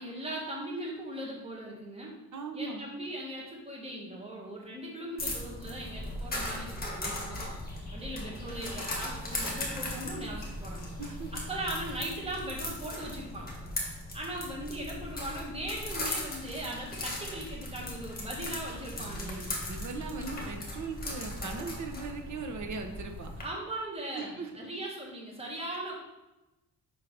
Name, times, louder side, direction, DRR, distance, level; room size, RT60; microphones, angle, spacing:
voice 1, 0.0-2.1 2.5-7.4 7.9-10.8 11.3-13.5 14.1-19.5 23.4-25.9, right 1 dB, 15° right, -3 dB, 1.5 m, -39 dB
voice 2, 2.3-2.8 11.0-11.3 19.0-23.3 24.1-24.5, right 4 dB, 50° right, 4 dB, 0.9 m, -39 dB
sound 1, 5.2-23.4, left 1 dB, 25° left, 1.4 m, -38 dB
5.7 x 4.5 x 5.1 m, 1.0 s
wide cardioid pair, 170°, 38 cm